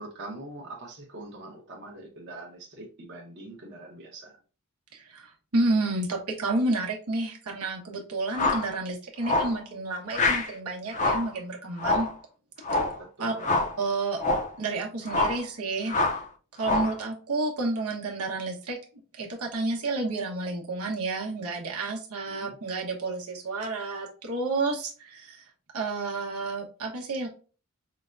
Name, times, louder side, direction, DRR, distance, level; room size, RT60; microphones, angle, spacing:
voice 1, 0.0-4.4 13.0-13.5 22.3-22.6, right 2 dB, 50° right, -1 dB, 1.0 m, -43 dB
voice 2, 4.9-12.1 13.2-13.3 13.8-14.2 14.6-15.9 16.6-18.8 19.2-25.4 25.7-27.3, right 2 dB, 85° right, -1 dB, 1.1 m, -30 dB
sound 1, 8.3-8.7 9.2-9.6 10.1-10.5 10.9-11.3 11.8-12.2 12.6-13.0 13.4-13.8 14.2-14.5 15.1-15.4 15.9-16.2 16.6-17.0, left 2 dB, 35° left, 0.5 m, -26 dB
5.1 x 2.2 x 2.5 m, 0.36 s
head